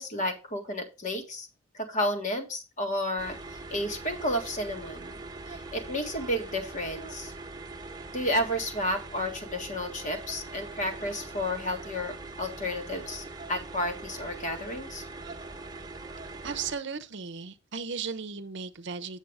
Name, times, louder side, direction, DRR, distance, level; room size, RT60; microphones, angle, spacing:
voice 1, 0.0-1.5 1.7-3.4 3.7-5.2 5.5-7.3 8.1-15.0, left 1 dB, 40° left, 1.8 m, -32 dB
sound 1, 3.2-16.8, right 3 dB, 20° right, 1.2 m, -42 dB
voice 2, 16.4-19.2, right 5 dB, 65° right, 0.7 m, -36 dB
8.5 x 7.2 x 3.4 m
head